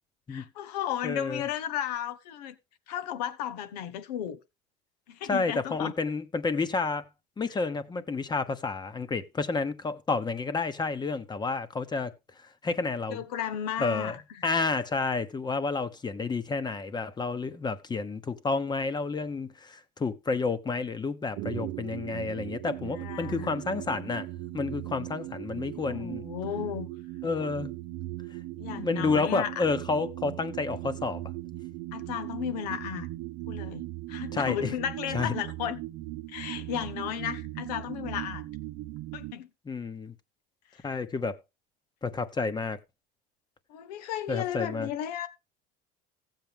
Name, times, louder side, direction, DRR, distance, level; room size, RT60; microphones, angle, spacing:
voice 1, 0.3-2.5 2.9-4.4 5.1-5.9 13.1-14.2 22.9-23.6 25.8-26.9 28.6-29.7 31.9-33.1 33.5-35.8 36.3-38.5 39.1-39.5 43.7-45.3, left 10 dB, 90° left, 1.2 m, -34 dB
voice 2, 1.0-1.4 5.3-7.0 7.4-12.1 12.6-13.2 13.8-24.3 24.5-26.2 27.2-27.7 28.7-31.2 34.3-34.7 35.1-35.3 39.7-40.1 40.8-41.4 42.0-42.8 44.3-44.9, left 4 dB, 20° left, 1.2 m, -30 dB
sound 1, 21.4-39.3, right 17 dB, 65° right, 0.7 m, -38 dB
15.5 x 7.6 x 3.5 m
supercardioid pair, 105°, 20 cm